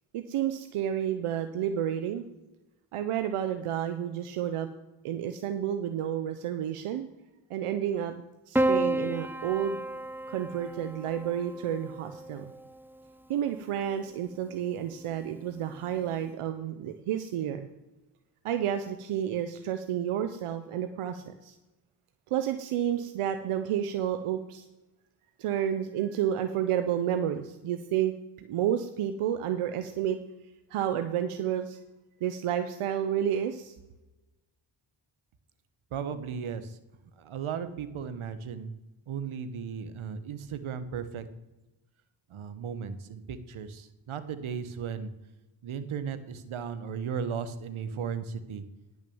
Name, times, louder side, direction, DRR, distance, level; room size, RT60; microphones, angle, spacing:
voice 1, 0.1-2.2 2.9-4.7 5.0-7.1 7.5-8.2 8.5-9.8 10.3-12.4 13.3-17.6 18.4-21.6 22.3-24.6 25.4-28.1 28.4-30.2 30.7-31.8 32.2-33.7, right 10 dB, 90° right, 8 dB, 0.8 m, -30 dB
Piano, 8.5-13.0 14.2-14.9, right 1 dB, 5° right, 0.6 m, -32 dB
voice 2, 35.9-36.8 37.2-38.8 39.1-41.2 42.3-45.1 45.6-48.6, right 7 dB, 75° right, 12 dB, 1.1 m, -36 dB
10.5 x 6.3 x 7.0 m, 1.0 s
cardioid pair, 60°, 49 cm